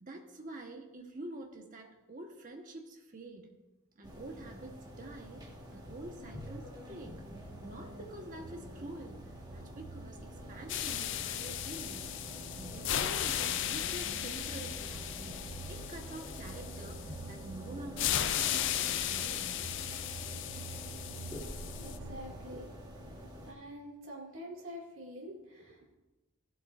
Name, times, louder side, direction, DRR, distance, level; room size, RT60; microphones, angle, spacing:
voice 1, 0.0-3.5 3.9-7.2 7.6-12.1 12.5-19.7, right 2 dB, 35° right, 2 dB, 1.1 m, -47 dB
sound 1, 4.0-23.5, equal, 20° right, 1.4 m, -47 dB
sound 2, 7.3-22.5, right 3 dB, 80° right, 0.7 m, -49 dB
sound 3, 10.7-17.3 18.0-22.0, left 11 dB, 55° left, 0.4 m, -36 dB
voice 2, 21.8-22.7 23.0-23.2 23.5-26.0, equal, 65° right, -3 dB, 2.2 m, -46 dB
15.5 x 7.5 x 2.5 m, 1.1 s
head